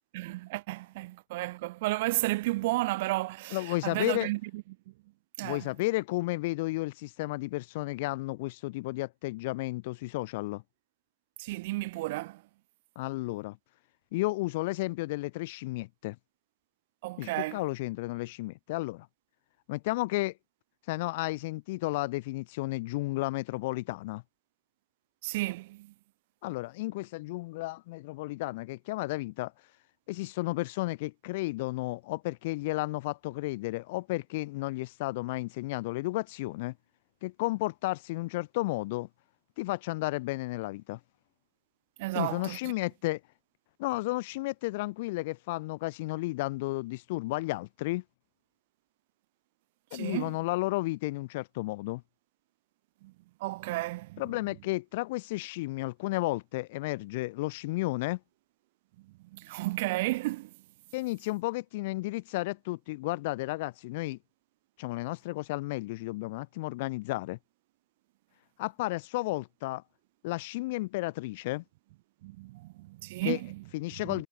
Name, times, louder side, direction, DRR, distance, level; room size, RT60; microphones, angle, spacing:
voice 1, 0.1-4.9 5.4-5.7 11.4-12.4 17.0-17.6 25.2-25.9 42.0-42.7 49.9-50.4 53.0-53.1 53.4-54.3 59.0-60.5 72.2-73.6 74.0-74.2, right 20 dB, 75° right, 1.6 m, -33 dB
voice 2, 3.5-4.3 5.4-10.6 13.0-13.6 14.1-16.2 17.2-19.1 19.7-20.3 20.9-24.2 26.4-29.5 30.1-36.7 37.2-39.1 39.6-41.0 42.1-43.2 43.8-48.0 49.9-52.0 54.2-58.2 60.9-64.2 64.8-67.4 68.6-69.8 70.2-71.6 73.2-73.4 73.7-74.3, left 20 dB, 75° left, 3.5 m, -33 dB
supercardioid pair, 115°, 0 cm